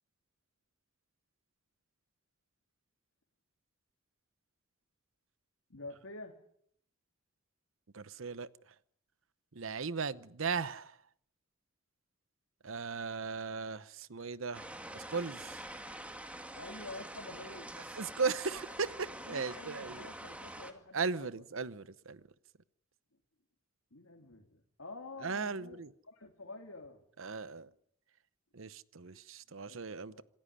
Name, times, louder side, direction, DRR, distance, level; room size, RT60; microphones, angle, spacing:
voice 1, 5.7-6.4 16.5-17.7 19.3-21.3 23.9-27.0 29.0-29.2 29.7-30.2, left 2 dB, 85° left, 3.0 m, -48 dB
voice 2, 7.9-8.5 9.5-11.0 12.6-15.6 17.9-20.0 20.9-22.2 25.2-25.9 27.2-27.7 28.5-30.2, right 5 dB, 70° right, 0.9 m, -37 dB
sound 1, 14.5-20.7, right 1 dB, 5° right, 2.2 m, -46 dB
27.0 x 14.5 x 10.0 m
head